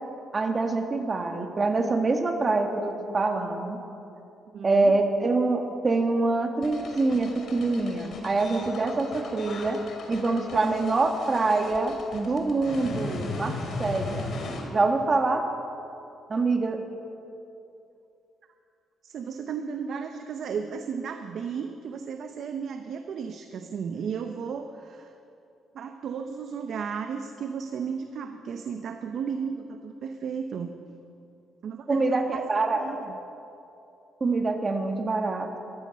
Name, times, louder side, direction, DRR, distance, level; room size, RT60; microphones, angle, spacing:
voice 1, 0.3-3.8 4.6-9.8 10.1-14.3 14.7-15.4 16.3-16.8 31.9-33.0 34.2-35.6, right 3 dB, 35° right, 5 dB, 1.6 m, -25 dB
voice 2, 4.5-5.0 19.0-25.1 25.7-30.7 31.6-32.4 32.7-33.2, right 6 dB, 65° right, 6 dB, 0.8 m, -34 dB
sound 1, 6.6-14.6, left 3 dB, 60° left, 2.7 m, -37 dB
14.0 x 13.5 x 6.4 m, 2.7 s
cardioid pair, 90°, 0 cm